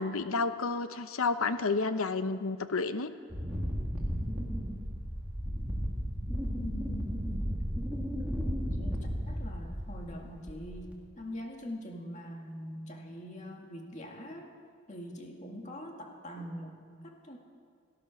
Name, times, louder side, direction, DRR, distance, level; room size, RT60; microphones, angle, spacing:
voice 1, 0.0-3.1, left 4 dB, 90° left, 11 dB, 0.9 m, -30 dB
Wind, 3.3-10.1 10.5-10.9, equal, 5° right, 2.1 m, -34 dB
voice 2, 6.6-7.3 8.2-8.4 8.7-14.5 14.9-17.4, left 1 dB, 35° left, 1 dB, 2.1 m, -43 dB
18.0 x 12.5 x 6.3 m, 2.1 s
head